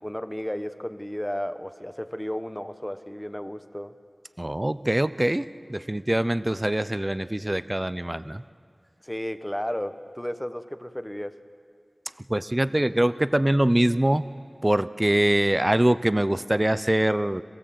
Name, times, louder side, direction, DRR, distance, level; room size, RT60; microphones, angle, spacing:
voice 1, 0.0-4.0 9.0-11.4, equal, 10° left, 10 dB, 1.0 m, -33 dB
voice 2, 4.4-8.4 12.3-14.3 14.6-17.4, right 1 dB, 25° right, 15 dB, 0.5 m, -23 dB
27.0 x 16.5 x 7.8 m, 2.3 s
wide cardioid pair, 60°, 0 cm